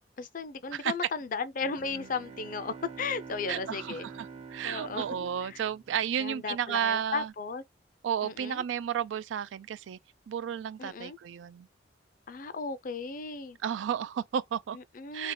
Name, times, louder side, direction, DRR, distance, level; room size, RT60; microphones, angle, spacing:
voice 1, 0.2-4.1 4.6-5.0 5.4-5.6 6.2-7.6 8.2-8.6 10.8-11.2 12.3-13.6 14.7-15.3, left 4 dB, 50° left, 0.5 m, -35 dB
Bowed string instrument, 1.6-6.5, right 5 dB, 35° right, 0.6 m, -47 dB
voice 2, 3.5-7.3 8.0-10.0 10.3-11.7 13.6-14.8 15.1-15.3, right 8 dB, 90° right, 0.3 m, -32 dB
2.9 x 2.8 x 3.7 m
head